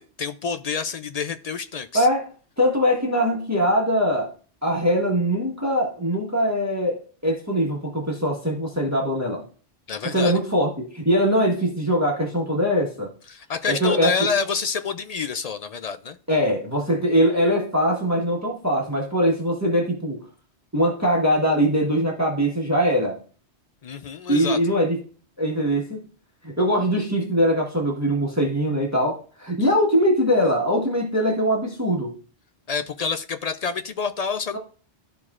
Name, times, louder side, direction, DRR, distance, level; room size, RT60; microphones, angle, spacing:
voice 1, 0.2-2.1 9.9-10.4 13.3-16.2 23.8-24.6 29.6-29.7 32.7-34.6, left 5 dB, 60° left, 10 dB, 0.4 m, -28 dB
voice 2, 1.9-2.3 2.6-4.3 4.6-9.4 10.1-13.1 13.7-14.1 16.3-20.2 20.7-23.2 24.3-25.0 25.4-26.0 26.4-32.1, equal, 15° right, -1 dB, 1.4 m, -22 dB
13.0 x 4.6 x 2.4 m, 0.40 s
omnidirectional pair, 1.2 m